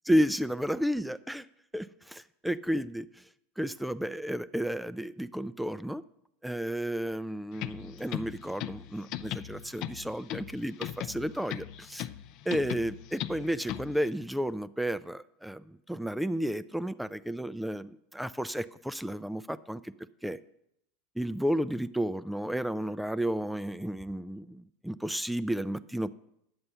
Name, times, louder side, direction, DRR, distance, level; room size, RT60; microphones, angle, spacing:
voice 1, 0.1-1.5 1.7-3.1 3.6-6.0 6.4-12.1 12.5-19.9 20.2-20.4 21.2-26.1, equal, 5° right, 16 dB, 0.4 m, -32 dB
sound 1, 7.5-14.1, left 13 dB, 55° left, 0.5 m, -39 dB
9.6 x 7.8 x 5.6 m, 0.78 s
hypercardioid pair, 90°, 0 cm